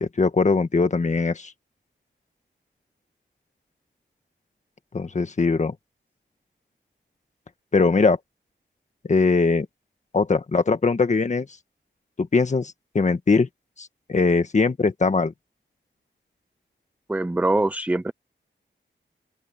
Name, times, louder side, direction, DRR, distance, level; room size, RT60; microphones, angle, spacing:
voice 1, 0.0-1.5 4.9-5.7 7.7-8.2 9.0-9.7 10.1-11.5 12.2-13.5 13.8-15.3, left 4 dB, 35° left, 1.7 m, -21 dB
voice 2, 17.1-18.1, right 2 dB, 10° right, 0.5 m, -23 dB
open air
wide cardioid pair, 165°, 20 cm